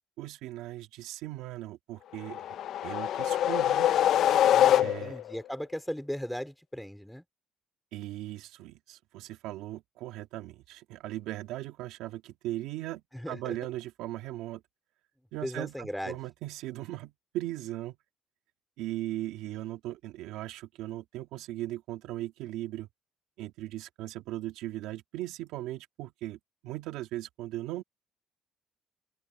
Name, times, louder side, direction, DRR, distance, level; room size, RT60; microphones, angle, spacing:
voice 1, 0.2-2.5 2.8-3.9 4.8-5.2 7.9-14.6 15.3-18.0 18.8-22.9 23.4-27.8, right 15 dB, 90° right, 2.2 m, -38 dB
sound 1, 2.2-5.3, left 11 dB, 65° left, 0.6 m, -24 dB
voice 2, 4.5-7.2 13.1-13.6 15.4-16.2, equal, ahead, 4.5 m, -37 dB
open air
cardioid pair, 100°, 0 cm